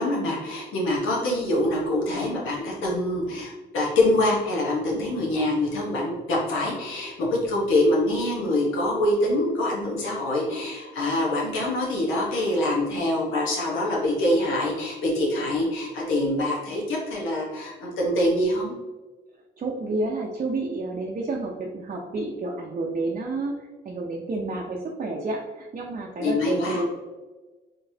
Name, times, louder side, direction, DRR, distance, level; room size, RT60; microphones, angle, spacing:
voice 1, 0.0-18.7 26.2-26.8, left 1 dB, 90° left, -3 dB, 1.1 m, -25 dB
voice 2, 19.6-23.6 23.8-26.9, right 2 dB, 40° right, -1 dB, 0.6 m, -30 dB
3.9 x 3.2 x 2.7 m, 1.2 s
cardioid pair, 90°, 20 cm